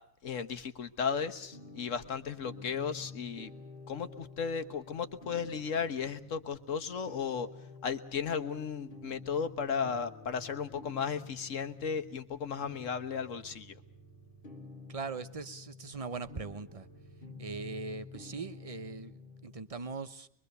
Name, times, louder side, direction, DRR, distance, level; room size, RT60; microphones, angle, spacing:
voice 1, 0.2-3.5 3.9-7.5 7.8-13.8, left 6 dB, 70° left, 8 dB, 1.7 m, -35 dB
sound 1, 1.0-19.6, left 3 dB, 45° left, 2.2 m, -50 dB
voice 2, 14.9-16.9 17.4-20.3, right 4 dB, 30° right, 12 dB, 1.0 m, -40 dB
24.5 x 23.5 x 6.8 m, 0.66 s
omnidirectional pair, 1.4 m